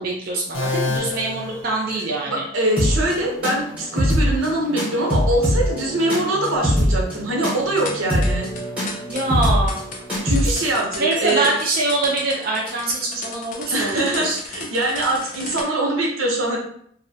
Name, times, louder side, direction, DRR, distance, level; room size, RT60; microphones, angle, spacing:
voice 1, 0.0-2.4 9.1-9.8 11.0-14.4, right 2 dB, 45° right, -2 dB, 0.4 m, -24 dB
sound 1, 0.5-2.4, left 3 dB, 90° left, 0.6 m, -28 dB
voice 2, 2.3-8.5 10.2-11.5 13.7-16.6, right 1 dB, 90° right, -1 dB, 0.7 m, -23 dB
sound 2, 2.7-10.7, equal, 5° right, 0.8 m, -23 dB
sound 3, 7.9-15.6, left 3 dB, 40° left, 0.3 m, -35 dB
2.6 x 2.1 x 2.7 m, 0.66 s
head